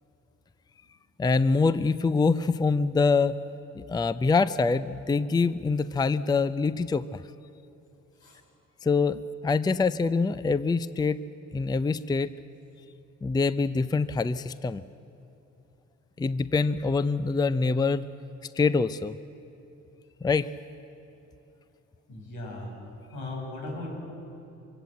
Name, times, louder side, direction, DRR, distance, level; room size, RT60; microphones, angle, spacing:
voice 1, 1.2-3.3 3.7-7.2 8.8-11.2 11.5-12.4 13.2-14.8 16.2-18.1 18.5-19.1 20.2-20.5, left 4 dB, 15° left, 15 dB, 0.5 m, -25 dB
voice 2, 22.1-22.7 23.1-23.9, left 2 dB, 85° left, -1 dB, 6.4 m, -37 dB
24.5 x 16.5 x 7.8 m, 2.9 s
cardioid pair, 90°, 30 cm